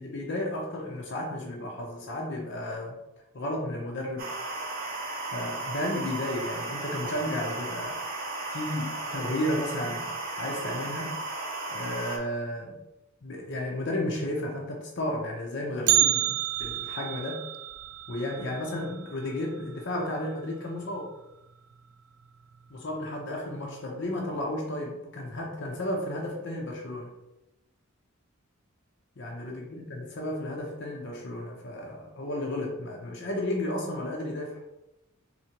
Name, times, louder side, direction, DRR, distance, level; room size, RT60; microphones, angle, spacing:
voice 1, 0.0-3.0 3.3-4.3 5.3-8.0 8.5-10.1 10.4-11.2 11.7-12.8 13.2-17.4 18.1-21.1 22.7-27.1 29.2-34.6, left 1 dB, 60° left, 0 dB, 0.7 m, -33 dB
sound 1, 4.2-12.2, right 2 dB, 45° right, 0.7 m, -35 dB
Bell, 15.9-20.0 20.2-20.3 20.8-20.9 21.7-21.8 22.6-22.9 23.2-23.3, right 14 dB, 85° right, 0.3 m, -29 dB
4.3 x 3.3 x 3.0 m, 0.92 s
head